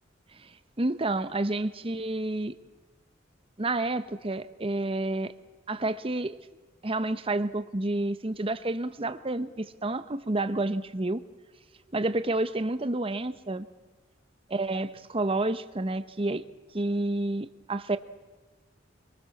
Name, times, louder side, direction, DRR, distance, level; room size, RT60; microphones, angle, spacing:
voice 1, 0.3-2.5 3.6-5.3 5.7-6.4 6.8-11.2 11.9-13.7 14.5-16.4 16.7-18.0, right 2 dB, 30° right, 12 dB, 0.9 m, -29 dB
25.0 x 19.5 x 7.2 m, 1.3 s
head